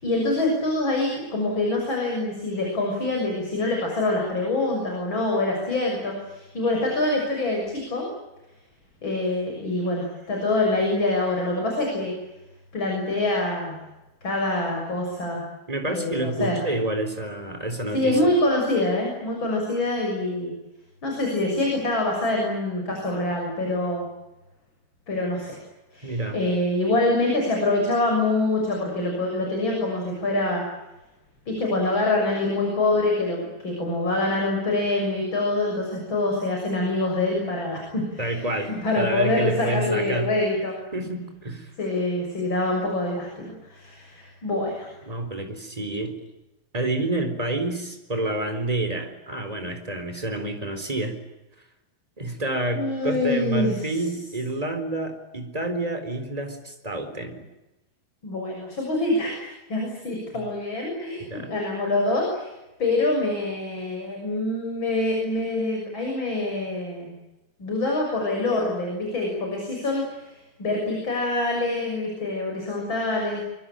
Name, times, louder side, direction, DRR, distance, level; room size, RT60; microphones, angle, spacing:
voice 1, 0.0-8.1 9.0-12.1 12.7-13.8 14.2-15.4 15.9-16.7 17.9-20.5 21.0-24.1 25.1-25.6 25.9-30.6 31.5-40.7 41.8-44.9 52.7-54.0 58.2-62.5 62.8-67.1 67.6-73.4, left 2 dB, 30° left, 1 dB, 7.3 m, -25 dB
voice 2, 15.7-18.2 26.0-26.4 38.2-40.3 40.9-41.7 45.1-46.2 46.7-51.2 52.2-57.5 60.3-60.4 61.3-61.5, right 2 dB, 10° right, 6 dB, 3.8 m, -28 dB
25.0 x 24.5 x 9.0 m, 0.98 s
omnidirectional pair, 4.4 m